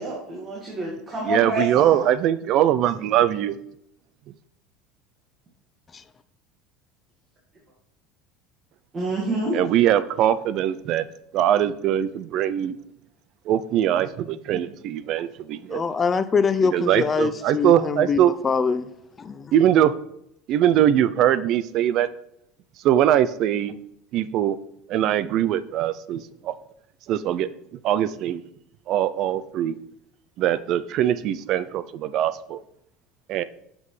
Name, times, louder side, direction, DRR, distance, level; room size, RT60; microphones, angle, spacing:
voice 1, 0.0-2.1 8.9-9.6 14.5-14.6, right 1 dB, 30° right, 1.9 m, -28 dB
voice 2, 1.3-3.6 9.5-11.0 11.3-12.8 13.5-15.8 16.7-18.3 19.5-19.9 20.5-22.1 22.8-23.8 24.1-24.6 24.9-26.5 27.1-27.5 27.8-28.4 28.9-29.8 30.4-32.6 33.3-33.4, right 11 dB, 55° right, 0.4 m, -21 dB
voice 3, 15.7-18.9 19.2-19.5, left 5 dB, 25° left, 0.4 m, -24 dB
7.3 x 6.0 x 3.2 m
supercardioid pair, 100°, 0 cm